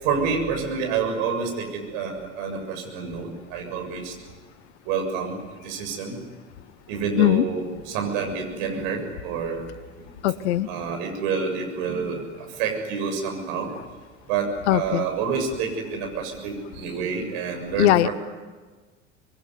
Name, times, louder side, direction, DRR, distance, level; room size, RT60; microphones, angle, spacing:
voice 1, 0.0-4.1 4.8-5.4 5.6-6.2 6.9-9.6 10.0-10.1 10.7-13.7 14.3-18.1, right 5 dB, 60° right, 4 dB, 7.3 m, -28 dB
voice 2, 10.2-10.7 14.7-15.1 17.8-18.1, left 14 dB, 65° left, 17 dB, 1.2 m, -19 dB
26.0 x 22.0 x 9.8 m, 1.4 s
figure-of-eight pair, 75°, 36 cm